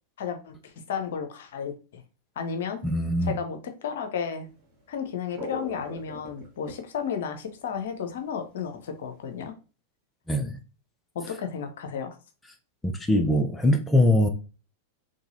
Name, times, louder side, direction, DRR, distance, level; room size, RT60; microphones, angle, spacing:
voice 1, 0.2-2.0 2.4-2.8 3.2-4.5 4.9-9.5 11.1-12.2, left 7 dB, 60° left, 0.7 m, -33 dB
voice 2, 2.8-3.3 10.3-10.6 12.8-14.3, left 1 dB, 10° left, 0.6 m, -22 dB
sound 1, 4.6-4.7 5.0-8.4 8.7-9.5, left 2 dB, 35° right, 1.8 m, -39 dB
3.8 x 3.3 x 2.6 m
figure-of-eight pair, 95°, 0 cm